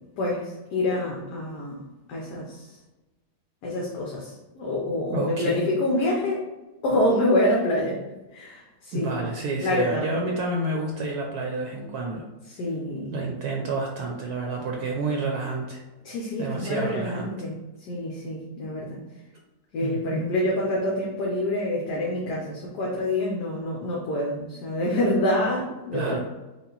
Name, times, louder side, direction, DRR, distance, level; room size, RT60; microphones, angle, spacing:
voice 1, 0.2-1.8 2.1-2.7 3.6-6.4 6.8-8.0 8.3-9.2 9.6-10.1 12.5-13.1 16.0-19.0 19.7-26.2, left 1 dB, 70° left, -3 dB, 1.3 m, -26 dB
voice 2, 5.1-5.7 8.9-12.2 13.1-15.8 16.4-17.3 19.8-20.3 25.9-26.2, right 2 dB, 70° right, 0 dB, 1.0 m, -29 dB
5.2 x 2.5 x 3.9 m, 1.1 s
omnidirectional pair, 1.9 m